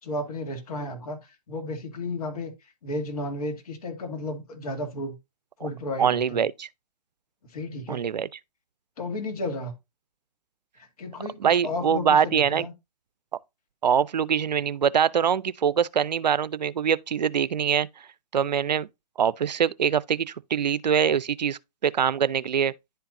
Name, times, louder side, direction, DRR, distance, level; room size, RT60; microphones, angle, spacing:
voice 1, 0.0-5.2 5.6-6.4 7.5-8.0 9.0-9.7 10.8-12.7, left 2 dB, 60° left, 2.4 m, -33 dB
voice 2, 6.0-6.7 7.9-8.3 11.4-12.7 13.8-17.9 18.3-18.9 19.2-22.7, right 8 dB, 85° right, 0.4 m, -23 dB
10.5 x 4.5 x 2.6 m
hypercardioid pair, 130°, 21 cm